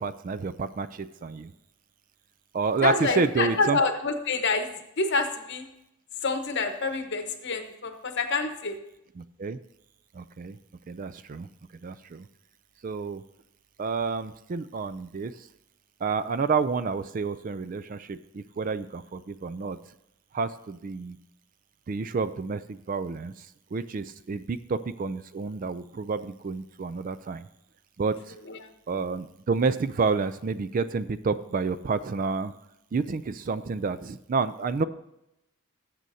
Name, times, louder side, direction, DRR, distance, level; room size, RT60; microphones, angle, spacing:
voice 1, 0.0-1.5 2.5-3.8 9.2-9.6 10.1-10.6 10.9-11.5 11.8-12.3 12.8-13.2 13.8-15.5 16.0-19.8 20.3-21.2 21.9-27.5 28.0-28.4 28.9-32.5 32.9-34.8, right 4 dB, 40° right, 14 dB, 0.3 m, -29 dB
voice 2, 2.8-4.7 5.0-5.7 6.2-8.8 28.5-28.7, left 3 dB, 50° left, 6 dB, 1.1 m, -27 dB
18.5 x 7.6 x 2.7 m, 0.87 s
head